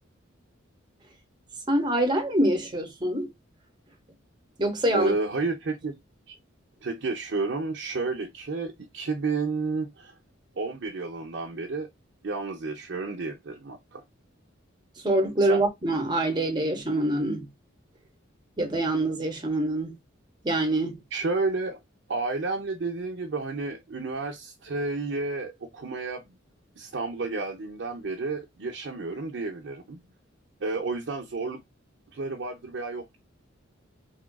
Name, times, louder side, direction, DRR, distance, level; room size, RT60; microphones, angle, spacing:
voice 1, 1.7-3.3 4.6-5.1 15.0-17.5 18.6-19.9 20.4-21.0, right 1 dB, 20° right, 0.8 m, -25 dB
voice 2, 4.9-6.0 6.3-6.4 6.8-10.1 10.6-11.9 12.2-14.0 15.4-15.6 21.1-21.8 22.1-26.4 26.8-30.0 30.6-31.6 32.1-33.2, right 3 dB, 60° right, 0.6 m, -31 dB
3.5 x 2.3 x 2.2 m
head